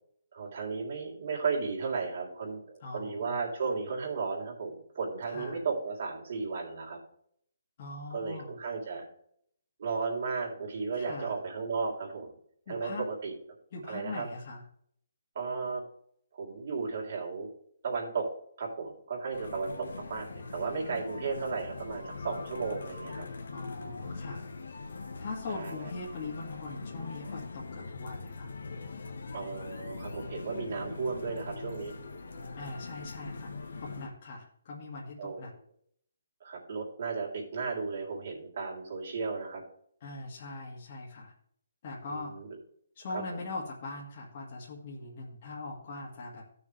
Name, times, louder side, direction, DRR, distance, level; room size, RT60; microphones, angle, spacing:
voice 1, 0.3-7.0 8.1-9.1 9.8-12.4 12.7-13.3 13.9-14.3 15.4-15.8 16.3-17.5 17.8-18.3 18.6-23.3 25.5-25.9 29.3-31.9 35.2-35.4 36.4-39.6 42.1-42.6 43.1-43.4, right 4 dB, 50° right, -1 dB, 3.5 m, -34 dB
voice 2, 2.8-3.4 5.3-5.6 7.8-8.6 11.0-11.3 12.7-13.0 13.7-14.6 23.5-24.5 25.2-28.5 32.6-35.5 40.0-41.3 41.8-42.3 43.0-46.4, left 3 dB, 40° left, -5 dB, 2.0 m, -41 dB
sound 1, 19.3-34.1, left 4 dB, 80° left, 1.5 m, -42 dB
14.5 x 6.6 x 3.4 m, 0.65 s
hypercardioid pair, 165°, 0 cm